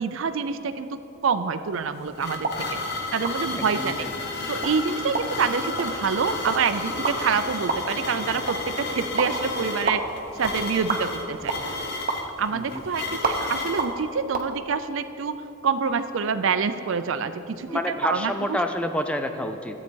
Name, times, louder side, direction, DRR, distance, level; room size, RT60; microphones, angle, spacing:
voice 1, 0.0-2.8 3.1-4.1 4.5-11.5 12.4-15.4 15.6-18.6, right 5 dB, 65° right, 11 dB, 0.4 m, -27 dB
sound 1, 1.7-13.9, left 3 dB, 50° left, 0.9 m, -32 dB
sound 2, 2.3-14.5, right 3 dB, 45° right, 0.8 m, -33 dB
voice 2, 3.6-4.1 12.5-12.8 17.7-19.8, left 1 dB, 5° left, 6 dB, 0.4 m, -29 dB
12.5 x 8.1 x 4.5 m, 2.9 s
head